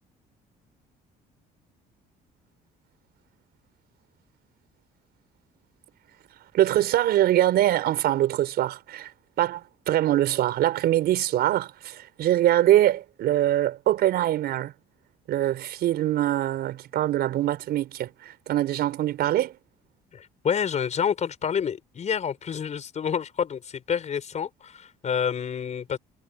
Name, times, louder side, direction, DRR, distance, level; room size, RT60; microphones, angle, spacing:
voice 1, 6.5-9.1 9.4-14.7 15.3-19.6, right 13 dB, 70° right, 5.2 m, -23 dB
voice 2, 20.1-26.0, left 7 dB, 45° left, 5.2 m, -28 dB
cardioid pair, 110°, 17 cm